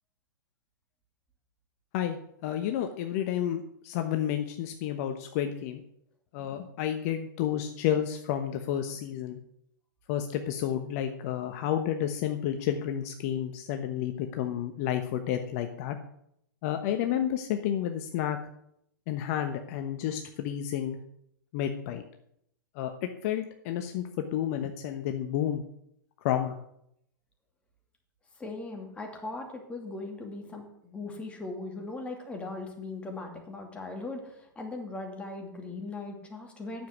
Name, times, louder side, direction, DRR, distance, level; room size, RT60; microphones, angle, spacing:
voice 1, 2.4-5.8 6.3-9.4 10.1-16.0 16.6-18.4 19.1-21.0 21.5-22.0 22.8-22.9 23.2-25.6 26.2-26.6, left 10 dB, 45° left, 6 dB, 1.0 m, -30 dB
voice 2, 28.4-36.9, left 2 dB, 10° left, 1 dB, 2.6 m, -39 dB
9.2 x 7.3 x 8.2 m, 0.74 s
hypercardioid pair, 120°, 11 cm